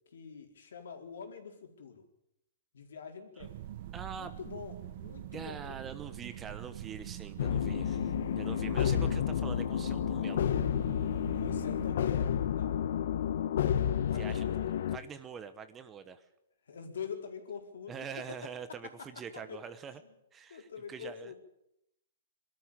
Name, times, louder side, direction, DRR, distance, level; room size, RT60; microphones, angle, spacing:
voice 1, 0.1-2.0 2.7-3.5 4.1-5.8 11.3-12.8 14.1-14.7 16.7-18.4 19.0-19.1 19.3-19.6 20.5-21.3, left 6 dB, 80° left, 4 dB, 4.4 m, -45 dB
sound 1, 3.4-12.0, right 13 dB, 45° right, 1.0 m, -44 dB
voice 2, 3.9-4.3 5.3-10.5 14.1-14.6 14.9-16.3 17.9-20.0 20.3-21.3, right 7 dB, 15° right, 11 dB, 1.0 m, -44 dB
sound 2, 7.4-15.0, left 9 dB, 60° left, 1.0 m, -30 dB
23.0 x 13.0 x 8.9 m, 0.81 s
hypercardioid pair, 160°, 0 cm